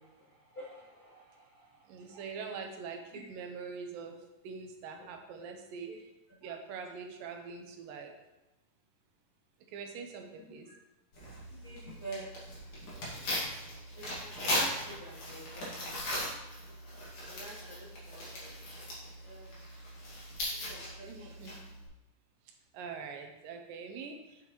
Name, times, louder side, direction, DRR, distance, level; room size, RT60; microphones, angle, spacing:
voice 1, 0.0-2.2 5.4-5.5 5.9-6.0 6.4-6.5 10.3-10.7 11.4-12.3 14.0-16.3 16.5-16.8 17.3-18.8 19.2-19.6 20.5-21.3, right 2 dB, 75° left, -8 dB, 0.8 m, -49 dB
voice 2, 1.9-4.2 4.4-5.9 6.4-8.1 9.7-10.7 12.9-13.0 21.1-21.5 22.7-24.2, right 5 dB, 80° right, 4 dB, 2.5 m, -43 dB
Tearing, 11.1-21.9, left 1 dB, 45° left, 2.5 m, -39 dB
7.6 x 6.7 x 3.1 m, 0.97 s
omnidirectional pair, 4.0 m